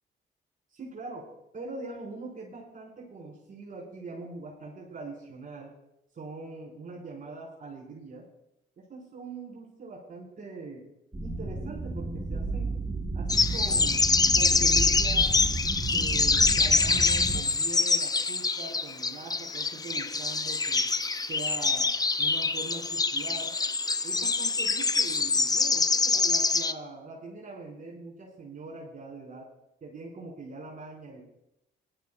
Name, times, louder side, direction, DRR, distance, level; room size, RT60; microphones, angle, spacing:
voice 1, 0.7-1.3 1.5-5.7 6.1-8.3 8.8-10.8 11.2-12.8 13.1-14.1 14.3-15.4 15.8-20.9 21.3-21.9 22.2-23.5 24.0-29.5 29.8-31.2, right 3 dB, 45° right, -4 dB, 5.0 m, -42 dB
sound 1, 11.1-17.4, right 3 dB, 20° right, 1.5 m, -32 dB
sound 2, 13.3-26.7, left 4 dB, 20° left, 0.6 m, -25 dB
20.5 x 13.0 x 2.5 m, 0.83 s
cardioid pair, 90°, 20 cm